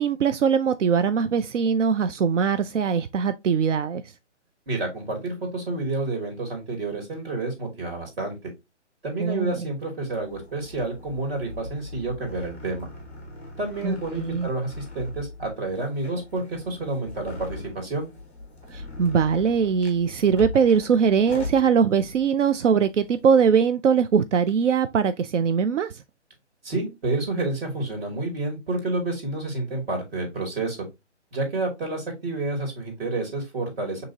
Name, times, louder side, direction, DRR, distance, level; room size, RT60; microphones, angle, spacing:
voice 1, 0.0-4.0 9.2-9.7 13.8-14.5 18.7-26.0, right 6 dB, 85° right, 0.5 m, -21 dB
voice 2, 4.7-8.5 9.0-12.9 13.6-18.1 26.6-30.9 31.3-34.0, right 2 dB, 50° right, 2.7 m, -29 dB
sound 1, 10.1-23.4, left 2 dB, 10° left, 0.4 m, -41 dB
6.1 x 2.8 x 2.7 m
hypercardioid pair, 150°, 36 cm